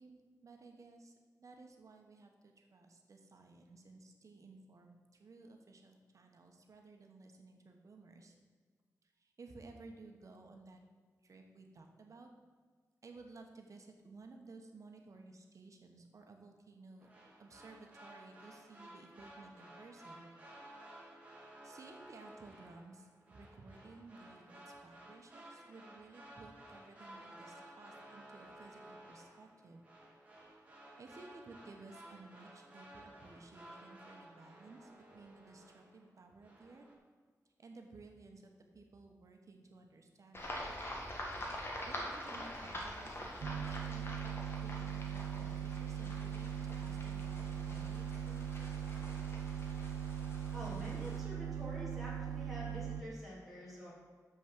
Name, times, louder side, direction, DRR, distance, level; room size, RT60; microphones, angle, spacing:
voice 1, 0.0-8.3 9.0-10.8 11.2-12.3 13.0-17.1 17.4-20.3 21.6-29.8 31.0-36.8 37.6-40.6 41.8-48.8, right 3 dB, 60° right, 3 dB, 1.1 m, -56 dB
sound 1, 17.0-36.1 36.4-36.9, right 1 dB, 20° right, 2.1 m, -56 dB
sound 2, 40.3-51.2, left 1 dB, 40° left, 1.7 m, -46 dB
sound 3, 43.4-53.0, right 9 dB, 80° right, 0.4 m, -40 dB
voice 2, 50.5-53.9, right 1 dB, ahead, -8 dB, 3.1 m, -47 dB
6.8 x 6.1 x 7.6 m, 1.5 s
wide cardioid pair, 140°, 6 cm